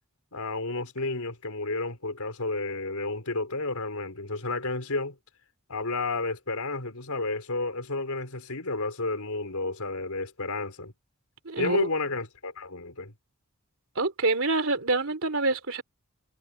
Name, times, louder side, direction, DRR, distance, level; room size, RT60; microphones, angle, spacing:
voice 1, 0.3-5.2 5.7-10.9 11.6-13.1, left 3 dB, 85° left, 4.4 m, -31 dB
voice 2, 11.5-11.9 14.0-15.8, right 3 dB, 65° right, 3.7 m, -26 dB
head